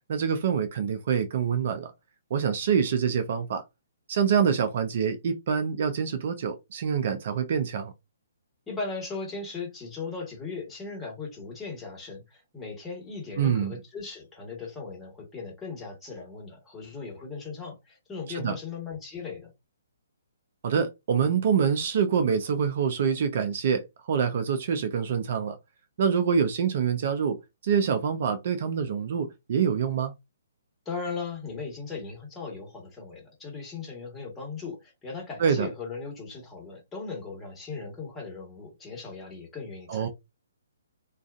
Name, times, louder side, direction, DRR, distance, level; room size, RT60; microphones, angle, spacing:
voice 1, 0.1-1.9 2.3-3.6 4.1-7.9 13.4-13.7 18.3-18.6 20.6-25.6 26.0-27.4 27.6-30.1 35.4-35.7 39.9-40.1, right 7 dB, 50° right, 0.5 m, -26 dB
voice 2, 8.7-19.5 30.8-40.1, left 4 dB, 10° left, 1.3 m, -38 dB
2.4 x 2.4 x 2.4 m
figure-of-eight pair, 135°, 0 cm